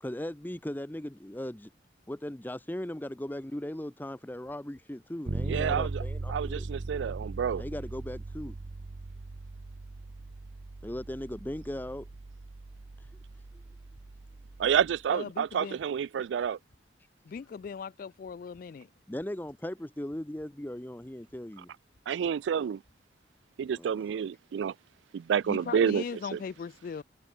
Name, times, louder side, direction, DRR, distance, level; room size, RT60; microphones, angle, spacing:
voice 1, 0.0-1.7 2.1-6.7 7.6-8.6 10.8-12.1 19.1-21.7 23.7-24.0, left 1 dB, 10° left, 0.7 m, -38 dB
sound 1, 4.4-4.9 5.4-5.8 6.3-6.7 7.2-7.6 8.1-8.5 9.0-9.4 10.0-10.4 10.9-11.3 11.8-12.2 12.7-13.1 13.6-14.1 14.6-15.0 15.5-15.9 16.4-16.8 17.3-17.7 18.2-18.7 19.2-19.6 20.1-20.5 21.0-21.4 21.9-22.3 22.8-23.0, equal, 85° left, 4.5 m, -65 dB
Bass guitar, 5.3-15.0, right 2 dB, 60° right, 0.7 m, -39 dB
voice 2, 5.4-6.0 6.3-7.6 14.6-16.6 22.1-22.8 23.6-24.7 25.1-26.0 26.3-26.4, right 7 dB, 90° right, 0.3 m, -29 dB
voice 3, 15.1-15.8 17.3-18.9 25.4-27.0, left 6 dB, 50° left, 0.3 m, -39 dB
head